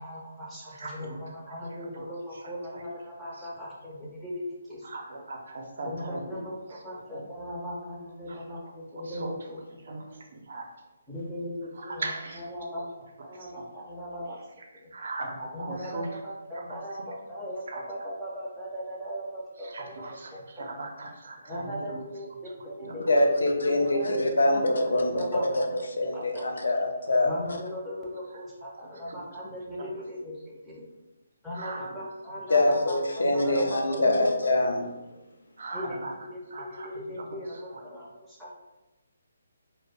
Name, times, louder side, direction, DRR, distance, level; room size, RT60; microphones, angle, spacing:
voice 1, 0.0-4.9 5.8-10.0 11.1-14.4 14.8-14.9 15.5-20.9 21.4-24.6 25.0-25.7 26.1-26.4 27.2-30.9 31.4-34.3 35.7-38.5, equal, ahead, -8 dB, 0.4 m, -38 dB
voice 2, 0.8-1.2 3.4-3.5 4.8-6.2 9.1-9.3 9.9-10.0 10.3-10.6 11.8-12.4 14.9-16.1 16.5-16.6 17.7-17.8 19.7-22.0 22.8-22.9 29.0-29.2 29.8-29.9 31.5-31.9 35.6-36.1 36.5-36.9 37.7-37.8, right 2 dB, 65° right, 2 dB, 0.5 m, -38 dB
voice 3, 23.1-27.3 32.5-34.9, left 2 dB, 80° left, 2 dB, 0.4 m, -24 dB
2.1 x 2.0 x 3.2 m, 1.0 s
hypercardioid pair, 155°, 0 cm